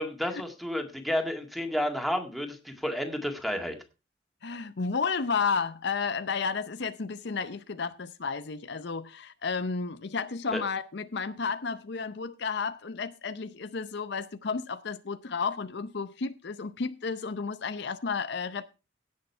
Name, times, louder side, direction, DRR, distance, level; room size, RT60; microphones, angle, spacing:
voice 1, 0.0-3.8 10.5-10.6, equal, ahead, 1.9 m, -31 dB
voice 2, 4.4-18.7, left 5 dB, 60° left, 0.6 m, -32 dB
17.0 x 6.5 x 4.5 m
head